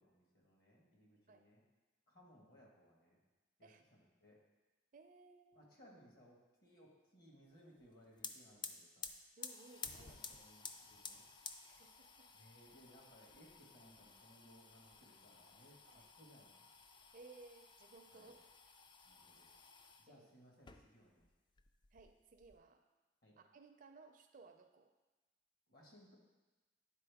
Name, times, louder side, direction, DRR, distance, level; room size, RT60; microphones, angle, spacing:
voice 1, 0.0-1.6 2.1-3.2 3.6-4.4 5.5-9.1 10.1-11.3 12.3-16.7 18.1-18.3 19.0-19.5 20.0-21.3 23.2-23.4 25.7-26.2, equal, 55° left, -2 dB, 1.5 m, -64 dB
voice 2, 4.9-5.8 9.4-10.2 11.7-12.3 15.8-16.1 17.1-18.4 20.1-20.3 21.9-22.8 23.4-24.9, right 3 dB, 45° right, 6 dB, 0.4 m, -60 dB
sound 1, 7.8-7.9 8.1-20.1 20.5-21.3 21.6-22.6, left 5 dB, 25° left, 0.3 m, -54 dB
9.9 x 4.1 x 3.5 m, 1.2 s
head